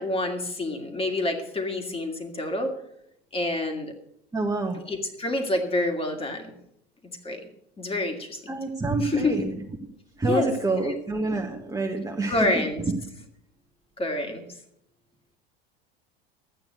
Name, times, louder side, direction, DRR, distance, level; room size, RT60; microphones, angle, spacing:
voice 1, 0.0-2.7 3.3-3.9 4.9-6.5 7.0-7.4 7.8-8.5 9.0-9.3 10.2-10.5 10.8-11.0 12.3-12.8 14.0-14.4, left 2 dB, 15° left, 4 dB, 2.3 m, -28 dB
voice 2, 4.3-4.8 8.5-9.5 10.2-12.6, right 2 dB, 10° right, 0 dB, 1.6 m, -27 dB
13.0 x 9.0 x 6.6 m, 0.75 s
figure-of-eight pair, 75°, 32 cm